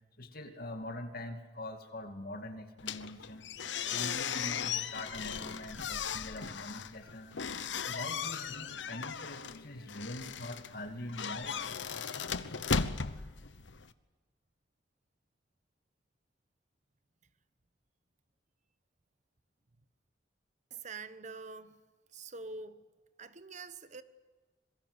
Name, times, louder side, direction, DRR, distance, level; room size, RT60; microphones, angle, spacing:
voice 1, 0.2-3.5 3.9-7.4 7.9-11.6, left 1 dB, 55° left, 6 dB, 2.4 m, -43 dB
sound 1, 2.8-13.9, left 6 dB, 80° left, 1.0 m, -37 dB
voice 2, 20.7-21.8 22.1-22.8 23.2-24.0, right 4 dB, 40° right, 13 dB, 1.1 m, -45 dB
26.0 x 22.0 x 8.0 m, 1.3 s
head